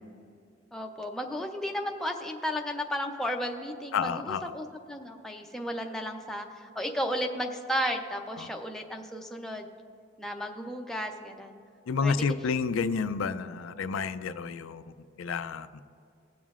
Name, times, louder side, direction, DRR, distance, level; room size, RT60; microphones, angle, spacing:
voice 1, 0.7-9.7 10.2-11.6 12.0-12.1, equal, ahead, 2 dB, 0.5 m, -34 dB
voice 2, 3.9-4.5 8.4-8.5 11.9-14.8 15.2-15.7, left 5 dB, 90° left, 11 dB, 0.4 m, -30 dB
19.0 x 7.3 x 2.4 m, 2.3 s
head